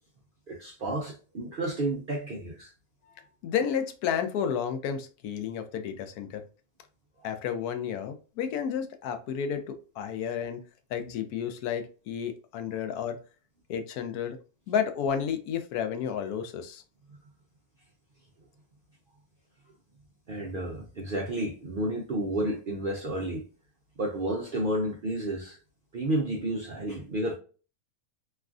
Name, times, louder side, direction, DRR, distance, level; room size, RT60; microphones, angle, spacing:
voice 1, 0.5-2.7 10.1-10.2 20.3-23.4 24.0-25.6 25.9-27.4, right 1 dB, 70° right, 0.5 m, -31 dB
voice 2, 3.2-6.4 7.2-10.6 10.9-13.2 13.7-14.4 14.7-16.8, left 8 dB, 90° left, 1.1 m, -31 dB
3.1 x 2.4 x 2.4 m
omnidirectional pair, 1.5 m